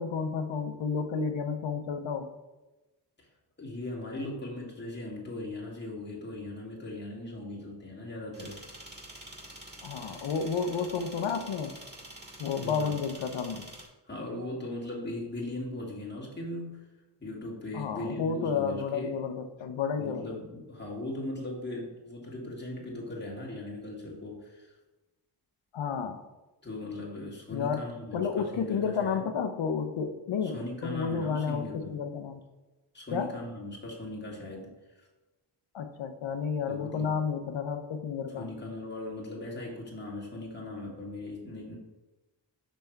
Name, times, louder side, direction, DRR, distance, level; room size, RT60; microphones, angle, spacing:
voice 1, 0.0-2.3 9.8-11.8 12.4-13.7 17.7-20.3 25.7-26.2 27.5-27.9 28.1-30.6 30.8-32.4 33.1-33.3 35.7-38.5, left 6 dB, 90° left, 8 dB, 0.7 m, -31 dB
voice 2, 3.6-8.6 12.6-13.0 14.0-16.9 17.2-19.2 20.0-24.7 26.6-29.3 30.4-32.0 32.9-35.1 36.7-37.2 38.3-41.8, left 1 dB, 25° left, -3 dB, 1.8 m, -39 dB
sound 1, 8.3-13.9, right 1 dB, 20° right, 1.9 m, -47 dB
5.6 x 5.2 x 4.5 m, 1.1 s
cardioid pair, 65°, 45 cm